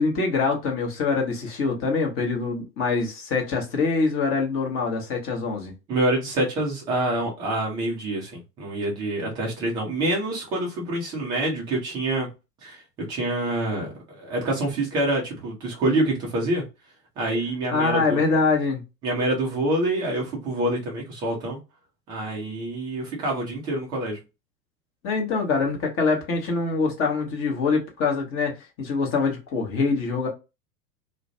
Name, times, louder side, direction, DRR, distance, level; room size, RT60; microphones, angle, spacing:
voice 1, 0.0-5.7 17.7-18.8 25.0-30.3, left 4 dB, 25° left, 0.8 m, -24 dB
voice 2, 5.9-12.3 12.6-12.8 13.1-16.6 17.2-18.4 19.0-21.6 22.1-24.2, right 1 dB, 10° right, 0.3 m, -26 dB
2.4 x 2.1 x 2.5 m
figure-of-eight pair, 100°, 49 cm